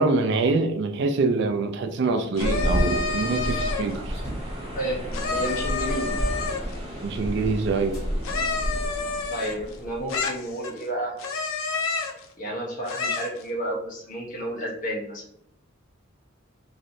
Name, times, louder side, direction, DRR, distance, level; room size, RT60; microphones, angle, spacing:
voice 1, 0.0-4.2 7.0-8.0, right 3 dB, 60° right, 8 dB, 0.4 m, -25 dB
sound 1, 2.4-4.0 5.1-6.8 8.2-9.8 10.1-10.8 11.2-12.2 12.9-13.4, left 4 dB, 85° left, 0.5 m, -29 dB
sound 2, 2.4-10.5, equal, 30° right, 0.8 m, -31 dB
sound 3, 4.1-4.6 5.3-5.4 5.8-7.3 7.9-8.1 8.8-9.9, equal, 15° left, 1.3 m, -36 dB
voice 2, 4.7-6.2 9.3-11.2 12.4-15.2, right 1 dB, 40° left, -3 dB, 0.9 m, -31 dB
3.0 x 2.6 x 2.6 m, 0.69 s
head